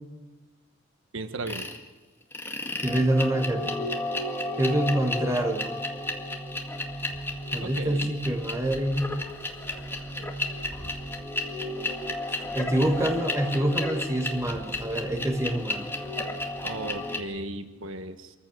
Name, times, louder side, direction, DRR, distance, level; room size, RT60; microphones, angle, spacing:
voice 1, 1.1-1.7 7.6-8.1 16.6-18.3, right 2 dB, 80° right, 8 dB, 1.3 m, -36 dB
sound 1, 1.5-1.8 2.3-17.2, left 1 dB, 10° left, 2.0 m, -33 dB
voice 2, 2.8-3.7 4.6-5.7 7.5-9.2 12.5-15.9, right 1 dB, 15° right, 4 dB, 1.7 m, -26 dB
25.5 x 15.0 x 7.6 m, 1.2 s
head